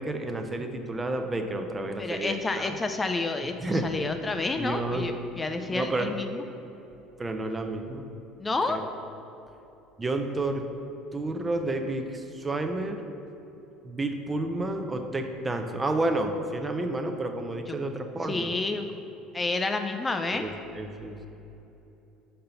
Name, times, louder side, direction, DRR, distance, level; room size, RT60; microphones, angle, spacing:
voice 1, 0.0-2.8 3.6-4.0 4.6-5.2 5.6-6.2 7.2-8.0 8.7-8.8 10.0-10.6 11.1-13.0 13.8-18.5 20.3-21.3, right 2 dB, 20° right, 5 dB, 0.6 m, -30 dB
voice 2, 2.0-6.4 8.4-8.8 18.3-18.8 19.3-20.4, left 3 dB, 25° left, 6 dB, 0.4 m, -29 dB
5.5 x 3.8 x 5.7 m, 2.9 s
hypercardioid pair, 70°, 0 cm